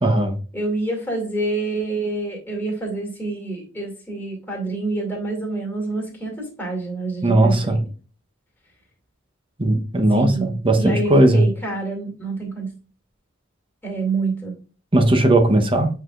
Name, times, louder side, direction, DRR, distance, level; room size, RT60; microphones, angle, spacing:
voice 1, 0.0-0.4 7.2-7.8 9.6-11.5 14.9-15.9, right 1 dB, 25° right, 0.9 m, -17 dB
voice 2, 0.5-7.8 10.1-12.7 13.8-14.5, right 2 dB, 10° left, 2.4 m, -27 dB
8.5 x 4.8 x 2.5 m
head